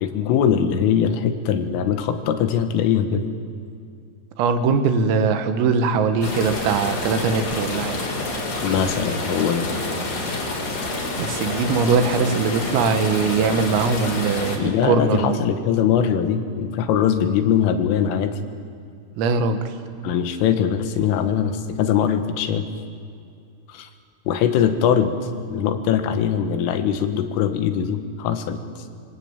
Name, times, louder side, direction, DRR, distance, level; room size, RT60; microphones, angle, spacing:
voice 1, 0.0-3.3 8.6-9.7 14.6-18.3 20.0-22.7 23.7-23.9 24.3-25.1 25.5-28.6, left 8 dB, 80° left, 8 dB, 4.1 m, -21 dB
voice 2, 4.4-8.0 11.2-15.4 19.2-19.7, right 5 dB, 85° right, 8 dB, 4.3 m, -21 dB
sound 1, 6.2-14.6, left 2 dB, 45° left, 4.9 m, -28 dB
27.0 x 24.0 x 9.0 m, 2.3 s
omnidirectional pair, 5.9 m